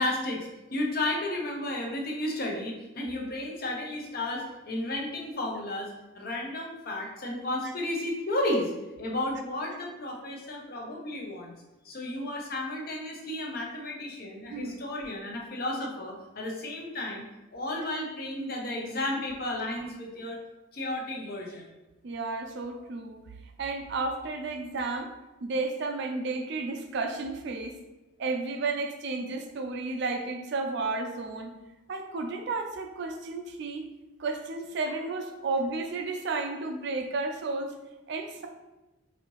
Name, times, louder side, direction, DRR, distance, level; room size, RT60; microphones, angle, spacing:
voice 1, 0.0-8.7 9.0-11.5 11.8-17.2 17.5-20.4 20.7-21.6, left 1 dB, 45° left, 0 dB, 0.7 m, -33 dB
voice 2, 22.0-23.2 23.6-25.1 25.4-27.8 28.2-31.5 31.9-33.9 34.2-37.7 38.1-38.5, right 3 dB, 55° right, 4 dB, 0.4 m, -32 dB
4.1 x 2.7 x 3.0 m, 1.1 s
head